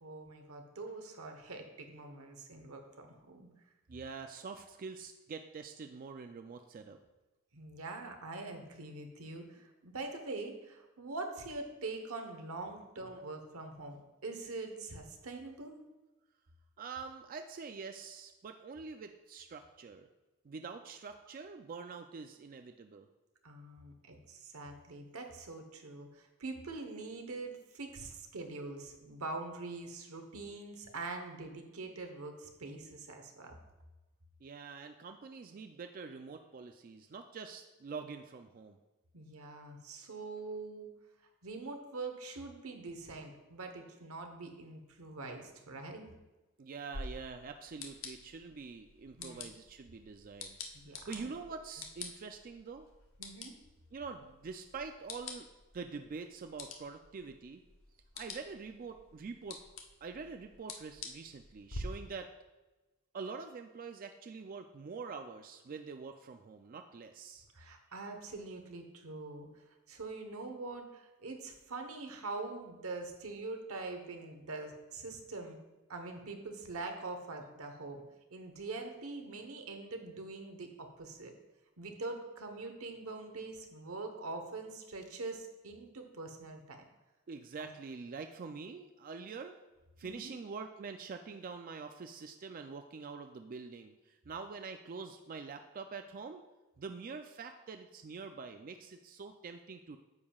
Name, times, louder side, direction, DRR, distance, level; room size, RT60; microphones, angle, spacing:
voice 1, 0.0-3.5 7.5-15.8 23.4-33.5 39.1-40.9 41.4-46.1 49.2-49.5 50.7-51.3 53.2-53.5 67.5-69.5 69.9-75.6 75.9-78.0 78.3-81.3 81.8-86.8 87.6-87.7 90.0-90.3, right 3 dB, 85° right, 5 dB, 1.1 m, -44 dB
voice 2, 3.9-7.0 16.8-20.1 20.4-23.1 34.4-38.8 46.6-50.6 51.1-52.9 53.9-55.5 55.7-57.6 58.1-59.6 60.0-62.3 63.1-67.5 87.3-89.6 90.0-96.4 96.8-100.0, right 5 dB, 40° right, 6 dB, 0.3 m, -45 dB
sound 1, 46.9-61.8, left 3 dB, 65° left, 0.9 m, -49 dB
9.6 x 7.3 x 2.3 m, 1.1 s
head